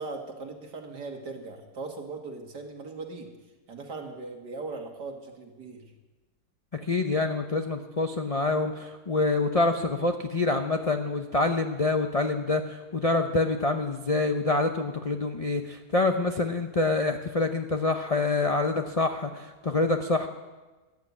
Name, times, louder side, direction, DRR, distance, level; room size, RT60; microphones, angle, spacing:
voice 1, 0.0-3.3 3.7-5.9, right 3 dB, 75° right, 2 dB, 2.5 m, -39 dB
voice 2, 6.7-20.3, left 3 dB, 50° left, 5 dB, 0.4 m, -26 dB
14.5 x 10.5 x 8.5 m, 1.2 s
omnidirectional pair, 1.8 m